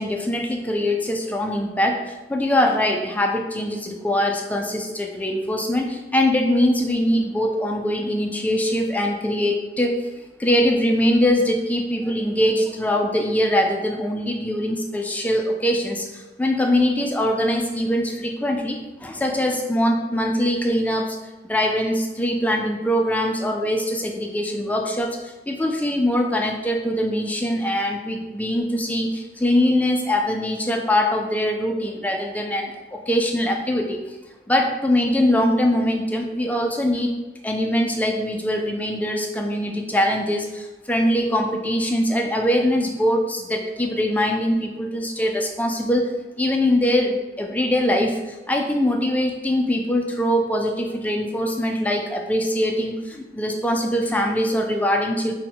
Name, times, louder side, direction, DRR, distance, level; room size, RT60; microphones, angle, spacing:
voice 1, 0.0-10.1 10.4-21.2 21.5-34.2 34.5-37.1 37.4-46.1 46.4-55.3, left 1 dB, 10° left, 3 dB, 0.3 m, -22 dB
3.7 x 2.2 x 3.9 m, 1.2 s
head